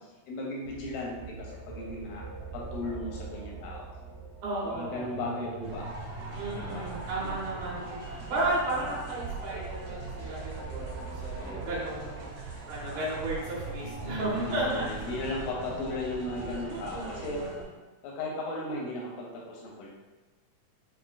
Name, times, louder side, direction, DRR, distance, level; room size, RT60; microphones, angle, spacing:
voice 1, 0.3-2.2 2.5-3.8 4.6-5.9 6.6-7.4 11.4-11.8 12.8-13.1 14.0-17.4 18.0-19.9, left 2 dB, 85° left, -3 dB, 2.2 m, -36 dB
sound 1, 0.6-17.6, right 3 dB, 55° right, 1.1 m, -42 dB
voice 2, 4.4-5.2 6.3-15.1 16.7-17.5, right 1 dB, 70° right, -8 dB, 2.1 m, -34 dB
sound 2, 5.6-17.6, right 3 dB, 90° right, 2.3 m, -43 dB
5.5 x 2.1 x 2.4 m, 1.2 s
omnidirectional pair, 3.7 m